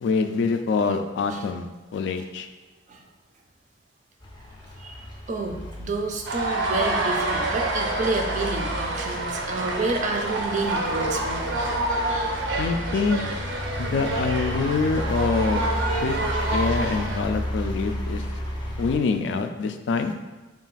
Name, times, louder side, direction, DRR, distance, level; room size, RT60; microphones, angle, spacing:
voice 1, 0.0-1.7 1.9-2.5 12.6-13.3 13.8-15.7 16.0-16.2 16.5-18.2 18.8-20.1, left 4 dB, 70° left, 8 dB, 0.3 m, -25 dB
sound 1, 4.2-19.0, equal, 25° left, 0.5 m, -33 dB
voice 2, 4.8-11.6 12.4-12.5 13.9-14.0 15.8-16.1 16.4-16.5, right 3 dB, 45° right, 3 dB, 0.4 m, -30 dB
sound 2, 6.3-17.2, right 2 dB, 90° right, 0.6 m, -28 dB
3.7 x 2.4 x 4.0 m, 1.1 s
head